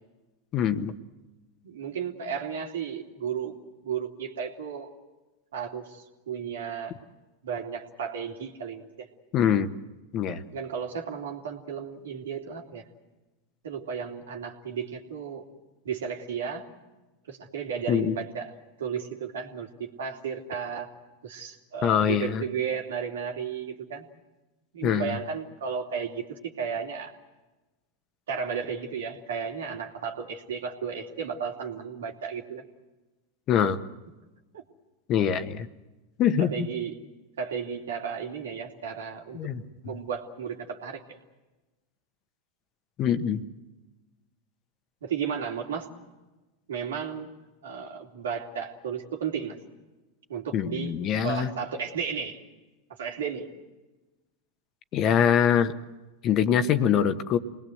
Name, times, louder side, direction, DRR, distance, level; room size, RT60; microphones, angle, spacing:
voice 1, 0.5-0.9 9.3-9.7 10.1-10.4 17.9-18.2 21.8-22.4 24.8-25.2 33.5-33.8 35.1-35.7 36.2-36.7 39.3-39.6 43.0-43.4 50.5-51.5 54.9-55.7 56.2-57.4, left 8 dB, 40° left, 10 dB, 1.3 m, -24 dB
voice 2, 1.6-3.6 3.8-4.9 5.5-6.9 7.4-9.1 10.5-12.8 13.6-15.5 15.8-16.7 17.3-18.5 18.8-20.9 21.2-24.0 24.7-27.1 28.3-32.6 34.5-34.6 36.4-37.0 37.4-39.4 39.8-41.0 45.0-45.9 46.7-47.3 47.6-49.6 50.3-50.9 51.2-52.4 53.0-53.5, right 7 dB, 80° right, 3 dB, 2.7 m, -34 dB
27.5 x 20.0 x 8.0 m, 1.1 s
hypercardioid pair, 100°, 0 cm